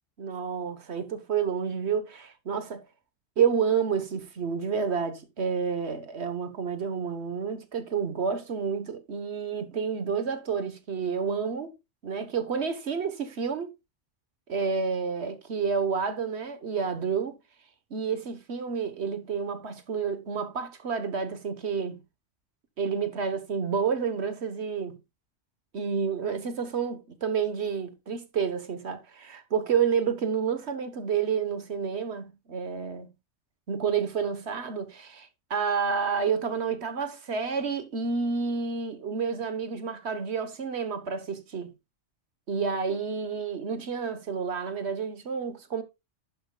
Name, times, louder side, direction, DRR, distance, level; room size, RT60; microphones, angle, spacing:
voice 1, 0.2-2.8 3.4-11.7 12.0-13.7 14.5-17.3 17.9-22.0 22.8-25.0 25.7-33.1 33.7-41.7 42.5-45.8, right 6 dB, 60° right, 1.5 m, -29 dB
11.5 x 9.1 x 2.3 m
omnidirectional pair, 1.3 m